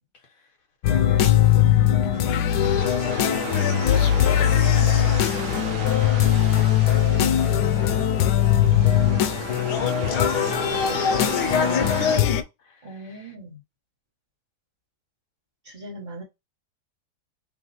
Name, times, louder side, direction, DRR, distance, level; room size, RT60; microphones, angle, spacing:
sound 1, 0.8-12.4, left 10 dB, 85° left, 1.2 m, -20 dB
sound 2, 2.1-12.2, right 5 dB, 60° right, 1.1 m, -34 dB
voice 1, 3.0-4.2 8.7-13.3, left 5 dB, 60° left, 1.6 m, -40 dB
voice 2, 6.9-8.1 10.9-11.0 12.8-13.6 15.6-16.2, right 2 dB, 30° right, 1.4 m, -40 dB
3.5 x 2.8 x 4.1 m
omnidirectional pair, 1.7 m